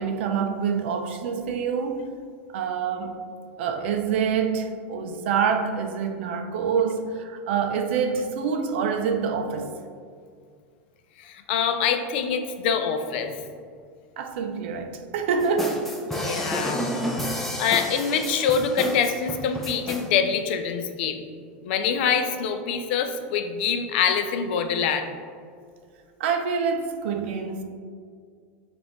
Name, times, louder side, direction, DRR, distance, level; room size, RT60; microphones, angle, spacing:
voice 1, 0.0-2.1 2.5-3.2 3.6-9.7 14.2-15.9 26.2-27.6, right 6 dB, 75° right, 0.4 m, -26 dB
voice 2, 11.2-13.4 16.1-16.8 17.6-21.2 21.6-25.1, left 7 dB, 65° left, 0.4 m, -25 dB
sound 1, 15.4-20.1, equal, 5° left, 0.5 m, -30 dB
5.1 x 2.5 x 2.9 m
supercardioid pair, 135°, 6 cm